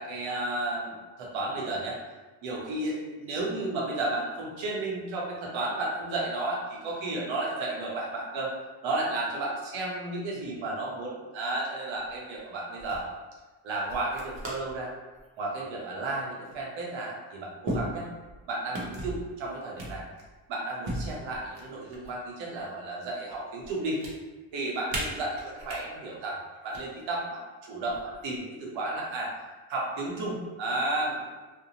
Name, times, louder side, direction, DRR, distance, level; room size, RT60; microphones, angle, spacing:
voice 1, 0.0-2.0 2.4-8.5 8.8-13.0 13.6-14.9 15.4-18.1 18.5-20.0 20.5-24.0 24.5-29.3 29.7-31.3, right 2 dB, 85° right, -3 dB, 0.9 m, -33 dB
sound 1, 12.0-12.4 12.8-13.1 13.9-14.8 15.2-15.5 16.5-16.6 17.6-18.4 18.7-19.2 19.8-20.4 20.8-22.2 22.6-23.3 23.6-24.1 24.9-25.8 26.5-26.8 27.9-28.4, right 1 dB, 50° right, 0.8 m, -36 dB
2.6 x 2.1 x 2.8 m, 1.2 s
cardioid pair, 115°, 45 cm